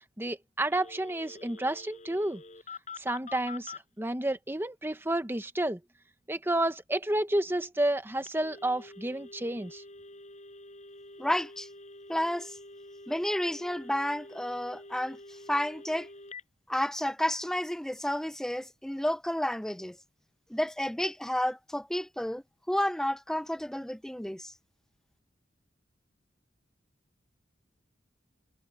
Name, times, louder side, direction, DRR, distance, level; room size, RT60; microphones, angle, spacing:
voice 1, 0.2-2.4 3.0-5.8 6.3-9.8, right 1 dB, 10° right, 1.1 m, -30 dB
Telephone, 0.7-3.8 8.2-16.4, left 3 dB, 40° left, 6.9 m, -47 dB
voice 2, 11.2-11.7 12.1-12.6 13.1-16.1 16.7-20.0 20.5-24.5, left 1 dB, 5° left, 0.4 m, -31 dB
head